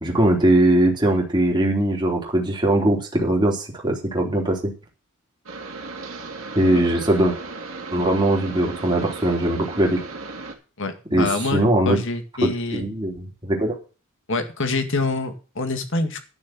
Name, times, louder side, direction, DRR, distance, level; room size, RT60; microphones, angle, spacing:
voice 1, 0.0-4.7 6.5-7.4 7.9-10.0 11.1-12.0 12.4-13.8, right 1 dB, 20° right, -1 dB, 3.1 m, -20 dB
sound 1, 5.5-10.5, right 3 dB, 70° right, 2.5 m, -36 dB
voice 2, 10.8-12.9 14.3-16.2, left 3 dB, 60° left, 7 dB, 1.9 m, -26 dB
11.5 x 6.6 x 7.5 m, 0.35 s
head